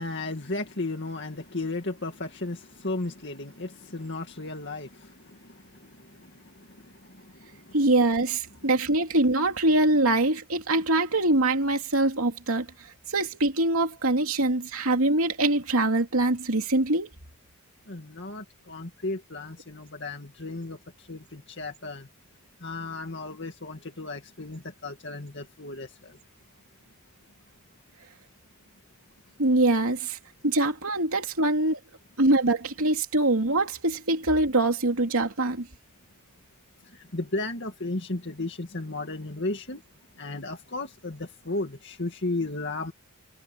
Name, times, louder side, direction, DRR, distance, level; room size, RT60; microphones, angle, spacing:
voice 1, 0.0-7.8 8.6-8.7 17.9-22.1 22.6-26.2 36.8-39.8 40.2-42.9, left 2 dB, 55° left, 2.2 m, -35 dB
voice 2, 7.7-17.1 29.4-30.2 30.4-31.8 32.2-35.7, right 2 dB, 85° right, 2.8 m, -24 dB
head